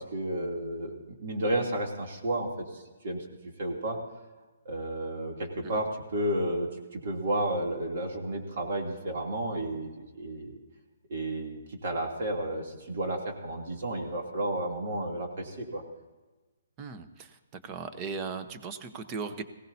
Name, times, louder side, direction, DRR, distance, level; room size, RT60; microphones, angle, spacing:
voice 1, 0.0-3.2 3.6-4.0 4.6-10.5 11.1-15.8, right 1 dB, 55° right, 1 dB, 2.9 m, -32 dB
voice 2, 16.8-17.4 17.6-19.4, right 5 dB, 25° right, 9 dB, 1.0 m, -37 dB
19.5 x 16.5 x 2.8 m, 1.2 s
hypercardioid pair, 155°, 0 cm